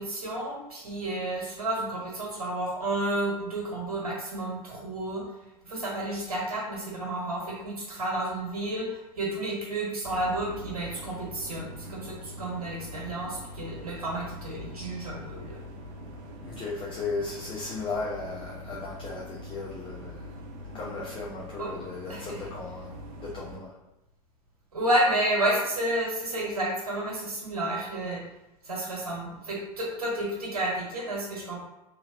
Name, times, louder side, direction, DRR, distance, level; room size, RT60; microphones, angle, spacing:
voice 1, 0.0-5.2 5.6-8.9 9.2-15.6 21.6-21.7 22.1-22.3 24.7-28.2 28.6-31.6, right 1 dB, 85° right, -3 dB, 1.1 m, -31 dB
sound 1, 10.0-23.6, left 1 dB, 55° right, 0.6 m, -43 dB
voice 2, 16.4-20.3 20.7-23.7, left 3 dB, 30° left, -4 dB, 0.6 m, -36 dB
2.9 x 2.8 x 2.5 m, 0.96 s
hypercardioid pair, 85°, 19 cm